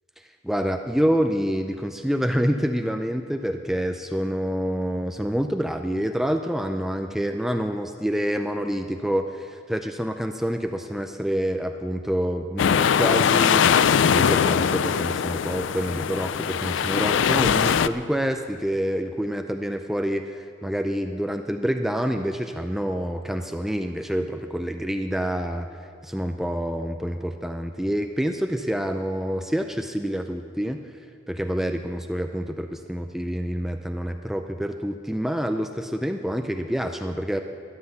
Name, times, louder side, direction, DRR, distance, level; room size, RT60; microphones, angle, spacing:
voice 1, 0.4-13.6 14.0-25.7 26.0-30.8 31.3-37.4, equal, ahead, 6 dB, 0.4 m, -27 dB
sound 1, 12.6-17.9, left 7 dB, 70° left, 0.4 m, -21 dB
13.0 x 10.0 x 7.0 m, 2.3 s
head